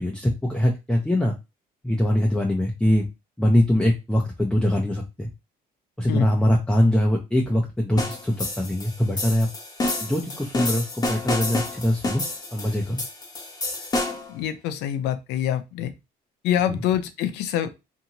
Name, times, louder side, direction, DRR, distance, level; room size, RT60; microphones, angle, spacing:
voice 1, 0.0-1.3 1.8-3.1 3.4-5.3 6.0-9.5 10.0-12.2 12.5-13.0 16.7-16.8, left 1 dB, 5° left, 0 dB, 0.5 m, -22 dB
sound 1, 8.0-14.3, left 2 dB, 25° left, 0.8 m, -29 dB
voice 2, 14.3-15.9 16.4-17.7, left 10 dB, 90° left, 10 dB, 0.5 m, -25 dB
2.7 x 2.7 x 2.8 m, 0.24 s
cardioid pair, 110°, 17 cm